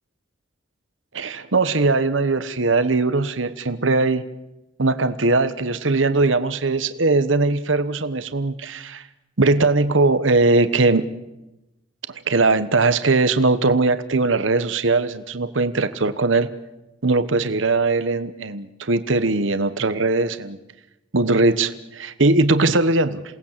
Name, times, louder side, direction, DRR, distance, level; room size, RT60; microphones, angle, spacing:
voice 1, 1.1-4.2 4.8-9.0 9.4-11.1 12.1-16.5 17.0-20.6 21.1-23.2, right 3 dB, 80° right, 12 dB, 1.1 m, -20 dB
28.0 x 19.0 x 7.5 m, 0.97 s
head